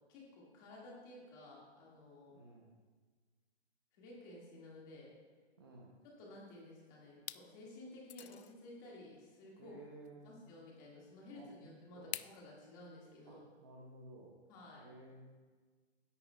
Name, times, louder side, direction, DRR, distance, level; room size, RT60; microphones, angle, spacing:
voice 1, 0.1-2.3 3.9-5.1 6.0-9.8 10.2-13.4 14.5-14.9, left 1 dB, 15° left, -4 dB, 1.8 m, -54 dB
voice 2, 2.3-2.7 5.6-5.9 9.6-10.4 11.3-12.1 13.3-14.4 14.7-15.2, right 2 dB, 20° right, -2 dB, 0.6 m, -55 dB
sound 1, 6.3-6.8 7.2-7.5 8.1-8.5 10.0-10.1 12.1-12.4, left 11 dB, 75° left, 0.5 m, -45 dB
16.5 x 10.5 x 2.2 m, 1.5 s
hypercardioid pair, 175°, 34 cm